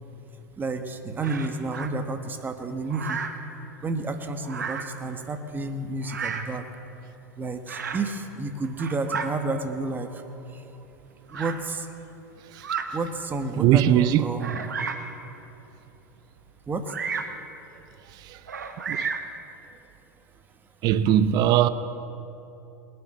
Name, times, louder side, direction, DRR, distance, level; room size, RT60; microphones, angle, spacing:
voice 1, 0.6-3.2 3.8-6.6 7.4-10.2 11.3-11.9 12.9-14.7 16.7-16.8, right 3 dB, 20° right, 1.4 m, -30 dB
Bird vocalization bird call bird song, 1.2-1.9 2.9-3.4 4.4-5.0 6.0-6.6 7.7-8.1 8.6-9.3 10.2-10.3 11.3-11.6 12.5-12.9 13.5-13.6 14.4-15.1 16.9-17.4 18.5-19.3, right 5 dB, 90° right, 1.1 m, -32 dB
voice 2, 13.6-14.3 18.2-18.4 18.9-19.1 20.8-21.7, right 11 dB, 45° right, 0.6 m, -20 dB
20.0 x 8.1 x 7.6 m
hypercardioid pair, 90°, 9 cm